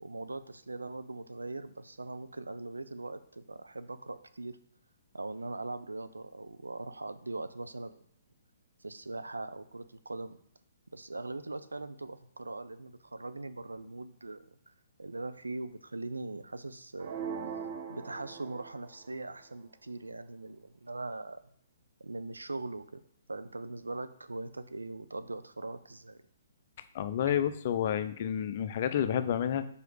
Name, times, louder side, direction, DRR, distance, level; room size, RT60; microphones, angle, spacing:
voice 1, 0.0-4.6 5.1-8.0 8.8-10.4 10.9-14.7 15.0-17.1 17.9-21.4 22.0-23.0 23.3-26.2, right 2 dB, 85° right, 12 dB, 0.5 m, -41 dB
sound 1, 17.0-19.1, right 6 dB, 50° right, 1.0 m, -40 dB
voice 2, 26.9-29.7, left 9 dB, 45° left, 11 dB, 0.5 m, -30 dB
5.0 x 4.9 x 4.8 m, 0.70 s
figure-of-eight pair, 125°, 0 cm